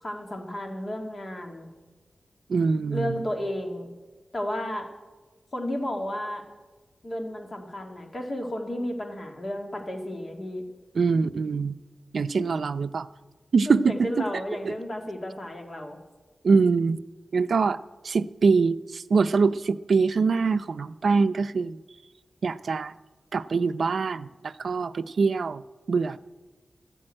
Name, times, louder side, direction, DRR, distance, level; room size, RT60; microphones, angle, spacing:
voice 1, 0.0-1.7 2.9-3.9 4.3-4.9 5.5-6.4 7.0-10.6 12.4-12.5 13.7-16.0, left 1 dB, 40° left, 2 dB, 2.2 m, -33 dB
voice 2, 2.5-3.2 10.9-11.7 12.1-13.1 13.5-14.2 16.4-17.0 17.3-21.8 22.4-22.9 23.3-25.6 25.9-26.2, right 4 dB, 70° right, 12 dB, 0.5 m, -24 dB
13.0 x 11.0 x 8.9 m, 1.3 s
wide cardioid pair, 135°, 0 cm